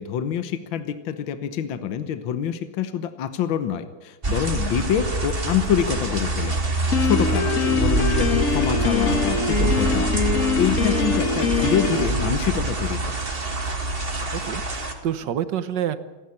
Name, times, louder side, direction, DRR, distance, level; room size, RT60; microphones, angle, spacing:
voice 1, 0.0-6.6 7.0-10.1 10.6-13.1, left 8 dB, 70° left, 10 dB, 1.8 m, -26 dB
sound 1, 4.2-14.9, right 2 dB, 30° right, 2.1 m, -25 dB
Piano, 6.9-12.1, left 5 dB, 45° left, 1.6 m, -23 dB
voice 2, 14.3-16.0, right 10 dB, 60° right, 12 dB, 1.6 m, -28 dB
27.5 x 11.0 x 9.9 m, 1.2 s
omnidirectional pair, 2.2 m